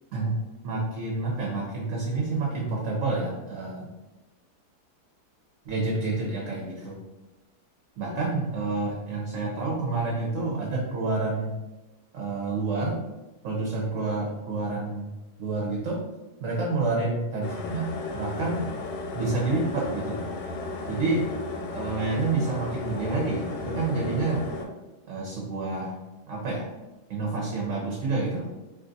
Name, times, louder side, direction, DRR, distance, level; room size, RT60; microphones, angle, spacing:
voice 1, 0.6-3.9 5.7-7.0 8.0-11.5 12.1-13.0 13.4-15.1 15.4-16.0 16.4-17.9 18.1-18.7 19.1-20.3 20.9-21.3 21.7-24.5 25.1-26.0 26.3-26.7 27.1-28.5, right 3 dB, 65° right, -3 dB, 0.9 m, -28 dB
sound 1, 17.4-24.7, left 3 dB, 70° left, 0.8 m, -34 dB
2.6 x 2.4 x 3.8 m, 1.1 s
omnidirectional pair, 1.7 m